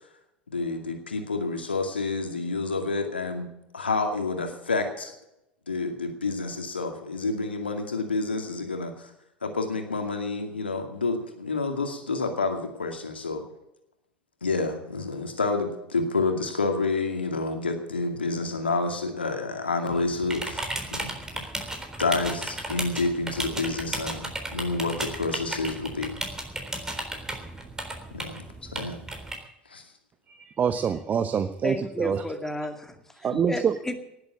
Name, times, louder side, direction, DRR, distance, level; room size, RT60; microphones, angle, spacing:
voice 1, 0.5-5.1 5.7-9.1 9.4-13.4 14.4-20.6 20.9-21.4 22.0-26.1 28.1-28.4 28.7-29.0 29.7-29.8 33.3-33.5, left 3 dB, 85° left, 5 dB, 2.3 m, -29 dB
sound 1, 19.9-29.4, right 1 dB, 10° right, 3.7 m, -35 dB
voice 2, 30.3-32.2 33.2-33.8, right 7 dB, 30° right, 11 dB, 0.9 m, -26 dB
voice 3, 31.6-33.9, left 1 dB, 5° left, 6 dB, 2.2 m, -33 dB
18.5 x 7.9 x 8.7 m, 0.84 s
figure-of-eight pair, 75°, 6 cm